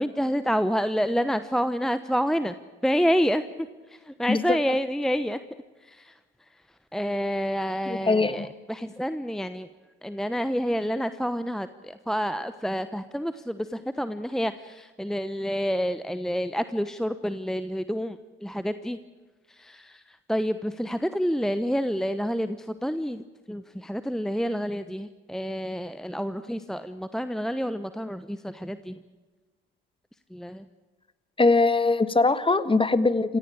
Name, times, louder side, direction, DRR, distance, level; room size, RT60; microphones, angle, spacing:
voice 1, 0.0-2.5 2.8-5.4 5.8-6.2 6.9-9.7 10.0-19.0 19.5-29.0 30.3-30.7, equal, ahead, 12 dB, 1.0 m, -28 dB
voice 2, 7.9-8.5 31.4-33.4, left 3 dB, 20° left, 14 dB, 1.5 m, -22 dB
27.5 x 15.5 x 8.7 m, 1.3 s
hypercardioid pair, 55°, 29 cm